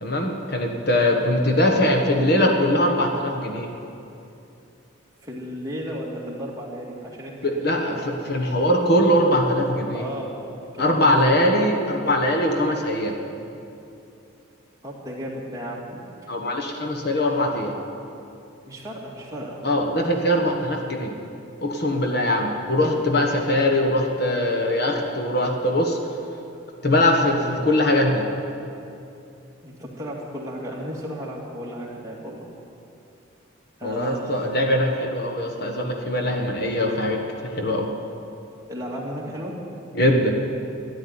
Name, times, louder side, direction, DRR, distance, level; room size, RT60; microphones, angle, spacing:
voice 1, 0.0-3.7 7.4-10.0 10.8-13.1 16.3-17.8 19.6-21.1 21.6-26.0 26.8-28.3 33.8-37.9 39.9-40.3, left 1 dB, 50° left, 2 dB, 1.4 m, -21 dB
voice 2, 5.2-8.0 9.9-11.1 14.8-16.3 18.7-19.6 29.6-32.5 33.8-34.5 38.7-39.6, equal, 15° right, -4 dB, 2.3 m, -34 dB
14.0 x 10.5 x 9.5 m, 2.7 s
head